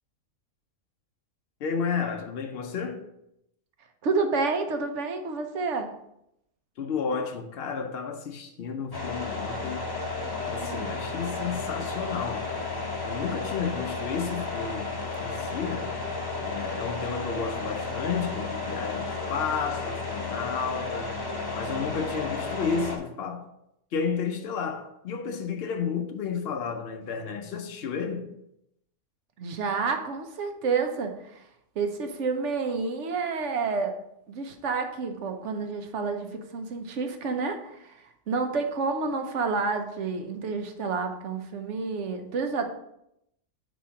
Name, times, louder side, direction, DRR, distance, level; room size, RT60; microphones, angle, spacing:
voice 1, 1.6-3.1 6.8-9.9 10.5-12.5 13.0-15.9 16.4-21.2 21.5-23.5 23.9-28.3, left 6 dB, 60° left, 0.7 m, -32 dB
voice 2, 4.0-5.9 10.6-11.0 29.4-31.4 31.8-33.9 34.3-42.7, right 4 dB, 65° right, 1.0 m, -29 dB
sound 1, 8.9-23.0, left 3 dB, 25° left, 0.6 m, -33 dB
4.7 x 4.1 x 5.7 m
omnidirectional pair, 1.4 m